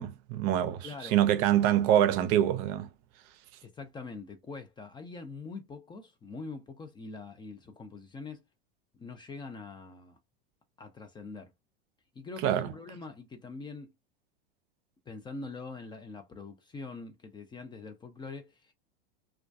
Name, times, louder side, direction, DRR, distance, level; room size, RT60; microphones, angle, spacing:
voice 1, 0.0-2.9 12.4-12.7, right 11 dB, 50° right, 0.5 m, -25 dB
voice 2, 0.8-1.2 3.6-8.4 9.0-10.2 10.8-11.5 12.1-13.9 15.1-18.7, left 4 dB, 15° left, 0.4 m, -43 dB
2.2 x 2.2 x 2.5 m
hypercardioid pair, 100°, 30 cm